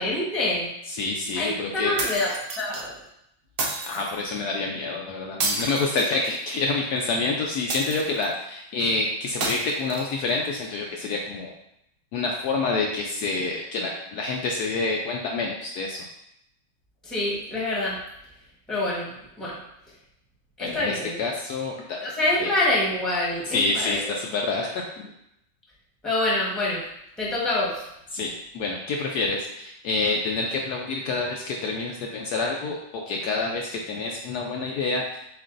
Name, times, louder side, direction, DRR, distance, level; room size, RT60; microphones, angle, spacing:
voice 1, 0.0-0.7 1.3-2.3 2.6-2.9 17.0-18.0 18.7-19.6 20.6-21.2 22.0-24.1 26.0-26.8 27.2-27.8, left 2 dB, ahead, -6 dB, 1.0 m, -26 dB
voice 2, 0.9-2.0 3.9-11.5 12.1-16.1 20.6-22.1 22.4-22.5 23.5-25.1 28.1-35.2, left 3 dB, 70° left, 0 dB, 1.0 m, -27 dB
sound 1, 2.0-2.8 3.6-4.2 5.4-6.6 7.7-8.4 9.4-10.4, right 2 dB, 85° right, 0.5 m, -30 dB
7.5 x 2.5 x 2.5 m, 0.80 s
omnidirectional pair, 1.9 m